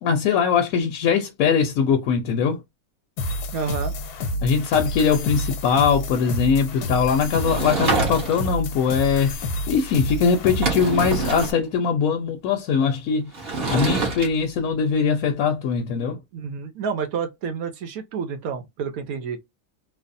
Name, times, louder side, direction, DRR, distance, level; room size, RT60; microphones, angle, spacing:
voice 1, 0.0-2.6 4.4-13.3 13.7-16.2, left 6 dB, 70° left, 1.0 m, -21 dB
sound 1, 3.2-11.5, left 1 dB, 90° left, 1.2 m, -29 dB
voice 2, 3.5-3.9 16.3-19.4, right 6 dB, 70° right, 1.1 m, -29 dB
Sliding door / Wood, 7.4-8.6 10.1-10.2 10.4-11.6 13.3-14.3, right 3 dB, 40° right, 1.2 m, -26 dB
3.2 x 2.0 x 2.5 m
omnidirectional pair, 1.6 m